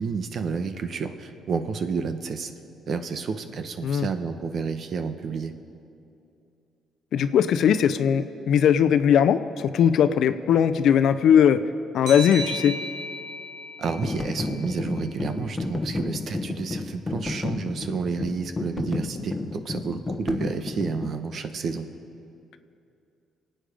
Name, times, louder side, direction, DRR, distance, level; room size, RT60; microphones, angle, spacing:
voice 1, 0.0-2.5 2.9-5.5 13.8-21.9, right 5 dB, 55° right, 8 dB, 1.1 m, -30 dB
voice 2, 7.1-11.6 11.9-12.7, left 8 dB, 70° left, 11 dB, 0.7 m, -19 dB
sound 1, 12.1-15.4, right 1 dB, 90° right, 3.3 m, -36 dB
sound 2, 13.9-21.2, left 3 dB, 20° left, 1.1 m, -32 dB
26.0 x 9.1 x 5.2 m, 2.6 s
cardioid pair, 95°, 0 cm